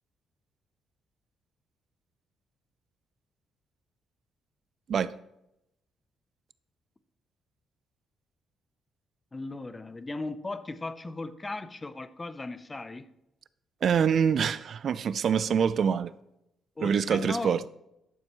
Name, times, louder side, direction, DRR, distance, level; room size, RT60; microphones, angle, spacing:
voice 1, 9.3-13.1 16.8-17.7, left 2 dB, 20° left, 0.6 m, -37 dB
voice 2, 13.8-16.1 16.8-17.6, right 7 dB, 55° right, 0.4 m, -25 dB
11.5 x 7.0 x 3.0 m
cardioid pair, 90°, 0 cm